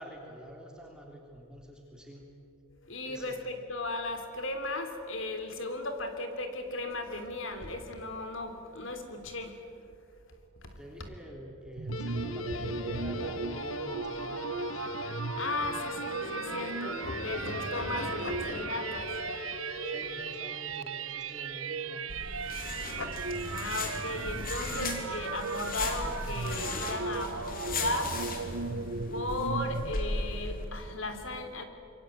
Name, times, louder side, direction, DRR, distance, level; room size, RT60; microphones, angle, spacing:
voice 1, 0.0-2.3 3.0-3.4 10.8-14.8 19.8-22.1, right 1 dB, 5° right, -1 dB, 3.4 m, -47 dB
voice 2, 2.8-9.6 10.6-10.8 12.9-13.3 15.2-19.9 22.7-31.6, left 2 dB, 65° left, 7 dB, 3.3 m, -36 dB
sound 1, 11.8-29.9, right 4 dB, 85° right, 1.0 m, -37 dB
Guitar, 11.9-21.2, left 3 dB, 85° left, 1.8 m, -40 dB
sound 2, 22.1-30.6, left 2 dB, 45° left, 3.3 m, -37 dB
26.5 x 24.0 x 9.2 m, 2.6 s
head